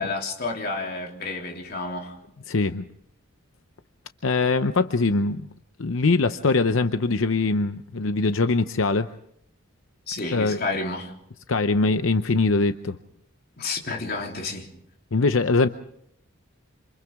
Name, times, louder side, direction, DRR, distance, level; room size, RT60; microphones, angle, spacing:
voice 1, 0.0-2.2 10.1-11.1 13.6-14.7, left 3 dB, 50° left, 3.4 m, -30 dB
voice 2, 2.5-2.8 4.2-5.5 5.8-9.1 10.3-10.6 11.5-13.0 15.1-15.7, left 3 dB, 85° left, 0.7 m, -22 dB
27.5 x 27.0 x 3.6 m
head